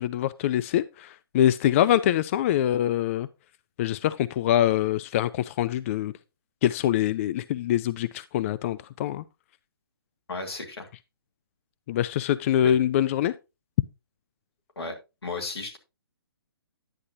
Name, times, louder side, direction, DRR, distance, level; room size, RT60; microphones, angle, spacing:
voice 1, 0.0-3.3 3.8-6.1 6.6-9.2 11.9-13.3, left 11 dB, 35° left, 0.4 m, -24 dB
voice 2, 10.3-10.9 12.6-12.7 14.8-14.9 15.2-15.8, left 3 dB, 90° left, 2.9 m, -34 dB
10.0 x 8.6 x 2.7 m
hypercardioid pair, 140°, 13 cm